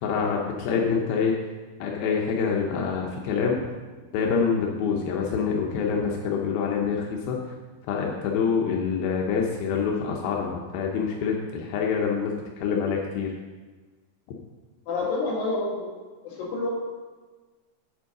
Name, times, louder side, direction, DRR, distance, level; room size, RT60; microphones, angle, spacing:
voice 1, 0.0-1.3 1.8-3.6 4.1-7.5 7.9-13.3, left 6 dB, 85° left, 0 dB, 2.7 m, -26 dB
voice 2, 14.9-15.9 16.2-16.7, left 3 dB, 60° left, -4 dB, 3.3 m, -28 dB
10.5 x 4.6 x 6.5 m, 1.3 s
omnidirectional pair, 4.2 m